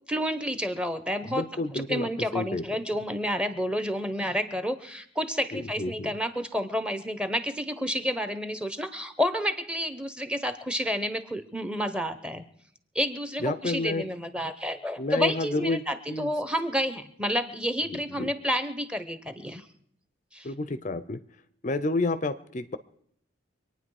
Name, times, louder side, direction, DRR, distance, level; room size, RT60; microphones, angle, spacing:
voice 1, 0.1-1.4 1.7-12.5 12.9-19.6 20.3-20.5, equal, 5° right, 10 dB, 0.8 m, -30 dB
voice 2, 1.3-2.1 2.3-2.6 5.5-6.1 13.4-14.1 15.0-15.8 16.1-16.3 17.9-18.3 20.4-21.2 21.6-22.8, left 2 dB, 40° left, 13 dB, 0.5 m, -30 dB
25.0 x 9.4 x 4.8 m, 0.66 s
head